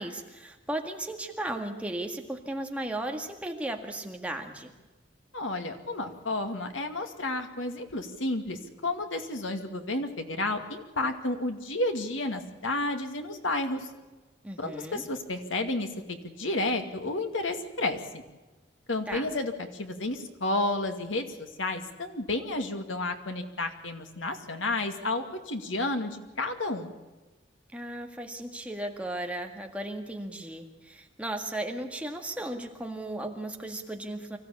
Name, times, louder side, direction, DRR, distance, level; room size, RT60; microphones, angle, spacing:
voice 1, 0.0-4.7 14.4-15.0 19.1-19.3 27.7-34.4, right 1 dB, 5° right, 3 dB, 1.9 m, -35 dB
voice 2, 5.3-13.9 14.6-18.0 18.9-26.9, left 2 dB, 85° left, 6 dB, 2.2 m, -31 dB
24.5 x 15.0 x 8.6 m, 1.2 s
head